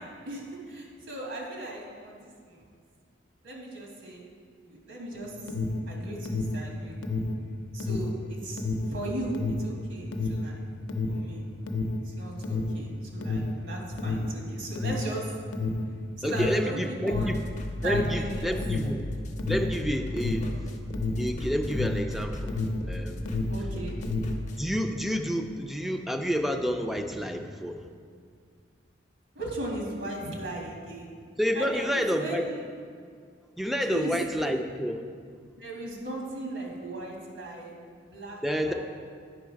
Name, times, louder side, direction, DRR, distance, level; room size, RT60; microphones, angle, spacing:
voice 1, 0.0-2.7 3.4-4.2 4.6-5.5 5.9-7.0 7.7-10.6 11.1-11.4 12.0-15.3 16.2-17.4 17.8-18.5 20.4-20.5 23.5-24.0 29.3-31.2 31.6-32.6 33.9-34.5 35.6-37.7 38.1-38.7, right 2 dB, 75° right, -1 dB, 1.8 m, -37 dB
Alarm, 5.1-22.9 23.2-24.5, left 2 dB, 85° left, 0.6 m, -30 dB
voice 2, 16.2-17.4 17.8-19.0 19.5-20.6 21.2-22.6 22.8-23.3 24.6-27.8 31.4-32.5 33.6-35.0 38.4-38.7, equal, ahead, 5 dB, 0.4 m, -29 dB
sound 1, 17.1-24.6, left 1 dB, 40° left, 0.6 m, -37 dB
9.4 x 5.5 x 4.6 m, 2.1 s
head